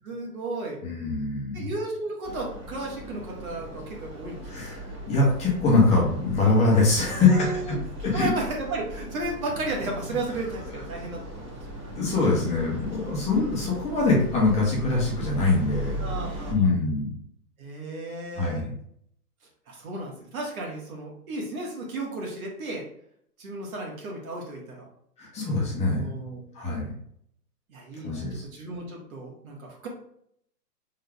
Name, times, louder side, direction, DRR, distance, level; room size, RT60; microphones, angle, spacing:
voice 1, 0.0-0.8 1.5-4.4 7.2-7.8 8.1-11.6 12.9-13.3 16.0-16.7 17.6-18.7 19.7-22.8 23.4-24.9 25.9-26.4 27.7-29.9, right 2 dB, 60° right, -1 dB, 1.8 m, -34 dB
voice 2, 0.8-1.7 4.5-7.5 8.0-8.3 10.7-10.8 11.9-17.1 18.4-18.7 25.2-26.2 26.5-26.9 28.0-28.4, left 3 dB, 15° left, -4 dB, 1.2 m, -23 dB
sound 1, 2.2-16.5, equal, 35° right, 1.8 m, -38 dB
5.2 x 3.8 x 2.4 m, 0.69 s
hypercardioid pair, 140°, 49 cm